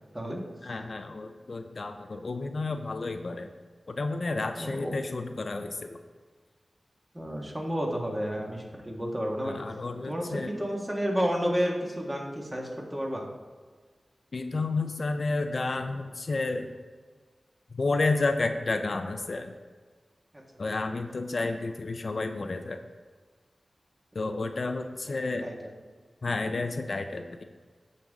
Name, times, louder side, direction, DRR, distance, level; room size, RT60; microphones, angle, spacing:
voice 1, 0.6-3.5 3.9-6.0 9.4-10.5 14.3-16.7 17.7-19.5 20.6-22.8 24.1-25.5 26.2-27.4, left 3 dB, 60° left, 7 dB, 0.6 m, -31 dB
voice 2, 4.6-5.0 7.1-9.6 10.1-13.3 20.3-20.4 25.1-25.5, equal, 20° right, -1 dB, 1.7 m, -31 dB
14.0 x 5.4 x 3.6 m, 1.5 s
wide cardioid pair, 75°, 0 cm